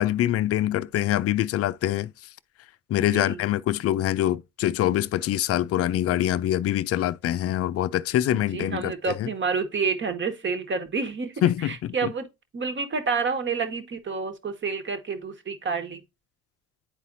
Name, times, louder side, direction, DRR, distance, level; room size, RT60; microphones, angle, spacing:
voice 1, 0.0-2.1 2.9-9.3 11.4-12.1, left 13 dB, 50° left, 0.5 m, -24 dB
voice 2, 3.0-3.4 8.3-12.3 12.5-16.0, right 5 dB, 35° right, 1.4 m, -29 dB
10.0 x 4.1 x 2.6 m
supercardioid pair, 75°, 31 cm